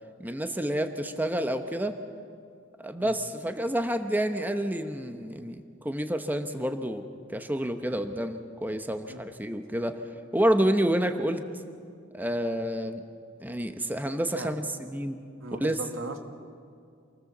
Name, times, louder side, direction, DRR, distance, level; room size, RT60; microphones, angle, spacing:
voice 1, 0.2-2.0 2.8-10.0 10.3-11.4 12.1-13.0 13.4-15.2 15.6-15.8, right 1 dB, 10° right, 7 dB, 0.9 m, -29 dB
voice 2, 15.4-16.2, right 3 dB, 80° right, 5 dB, 2.1 m, -38 dB
27.5 x 19.0 x 7.3 m, 2.3 s
head